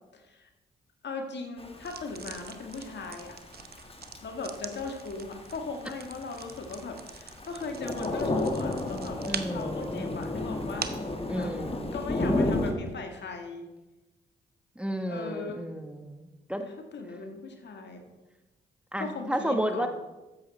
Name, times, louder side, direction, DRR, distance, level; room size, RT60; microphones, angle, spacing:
voice 1, 0.1-0.5 1.0-3.4 4.2-9.2 9.5-10.9 11.3-11.5 11.9-13.7 15.1-15.8 16.6-18.1 19.0-19.9, left 3 dB, 60° left, 4 dB, 1.8 m, -38 dB
Thunder / Rain, 1.6-12.7, left 2 dB, 30° left, 1.7 m, -33 dB
sound 1, 1.8-11.1, right 7 dB, 50° right, 0.9 m, -44 dB
voice 2, 9.3-10.1 11.3-11.9 14.8-16.6 18.9-19.9, equal, 5° right, 6 dB, 1.3 m, -32 dB
13.5 x 7.5 x 4.3 m, 1.1 s
supercardioid pair, 50°, 20 cm